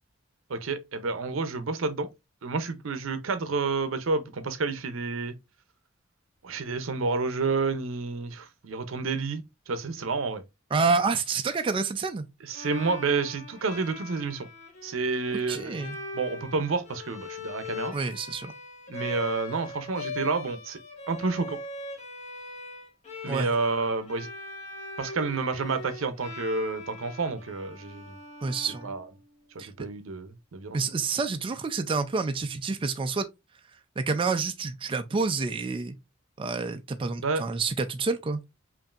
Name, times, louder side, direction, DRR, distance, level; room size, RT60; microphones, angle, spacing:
voice 1, 0.5-2.1 2.4-5.4 6.4-10.4 12.4-14.5 14.8-15.8 16.1-18.0 18.9-20.8 21.1-21.6 23.2-24.3 25.0-28.1 28.8-29.1 29.5-30.8 37.2-37.4, right 4 dB, 80° right, 0.6 m, -30 dB
voice 2, 10.7-12.3 15.3-16.0 17.9-18.5 23.2-23.5 28.4-28.9 29.6-29.7 30.7-33.3 34.0-35.9 36.4-38.4, right 4 dB, 25° right, 0.3 m, -28 dB
Bowed string instrument, 12.5-29.4, left 2 dB, 35° left, 1.1 m, -41 dB
5.2 x 2.6 x 2.4 m
head